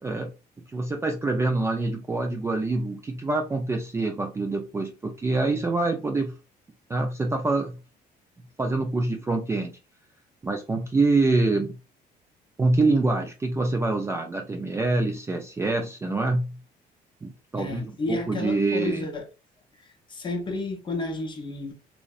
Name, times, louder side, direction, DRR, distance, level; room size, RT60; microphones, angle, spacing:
voice 1, 0.7-6.3 6.9-7.7 8.6-9.7 10.4-11.8 12.6-16.6 17.2-19.1, right 3 dB, 15° right, 0.3 m, -25 dB
voice 2, 17.6-19.3 20.1-21.7, left 3 dB, 30° left, 0.6 m, -31 dB
2.6 x 2.0 x 2.4 m
cardioid pair, 125°, 17 cm